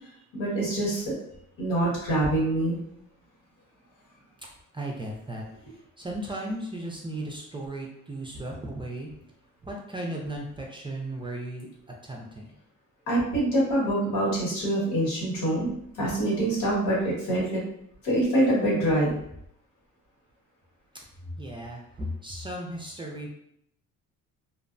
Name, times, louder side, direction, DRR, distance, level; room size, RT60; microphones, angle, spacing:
voice 1, 0.3-1.1 1.6-2.8 13.1-15.7 16.0-17.6 18.0-19.1, right 1 dB, 85° left, -5 dB, 1.5 m, -25 dB
voice 2, 4.7-5.4 6.0-9.1 9.6-11.7 12.0-12.5 21.4-23.3, right 1 dB, 15° right, -1 dB, 0.4 m, -35 dB
2.6 x 2.0 x 2.5 m, 0.73 s
cardioid pair, 95°, 34 cm